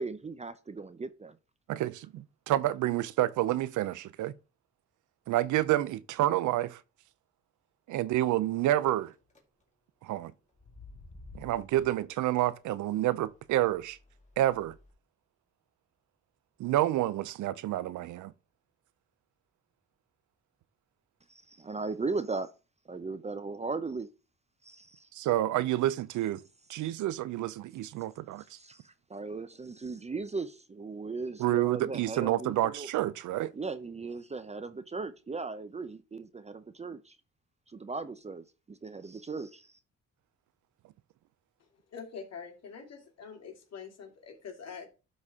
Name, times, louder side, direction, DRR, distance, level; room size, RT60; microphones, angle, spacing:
voice 1, 0.0-1.4 21.3-22.5 22.9-24.1 24.6-25.1 28.6-32.9 33.5-37.2 37.7-39.8, right 4 dB, 20° right, 0.6 m, -37 dB
voice 2, 1.7-4.3 5.3-6.8 7.9-9.1 10.0-10.3 11.3-14.0 14.4-14.7 16.6-18.3 25.1-26.4 26.7-28.6 31.4-33.5, right 14 dB, 75° right, 0.6 m, -29 dB
sound 1, 9.0-9.4 10.5-14.9, left 3 dB, 25° left, 2.4 m, -54 dB
voice 3, 41.6-44.9, left 6 dB, 55° left, 2.8 m, -45 dB
12.0 x 4.2 x 3.6 m
cardioid pair, 90°, 30 cm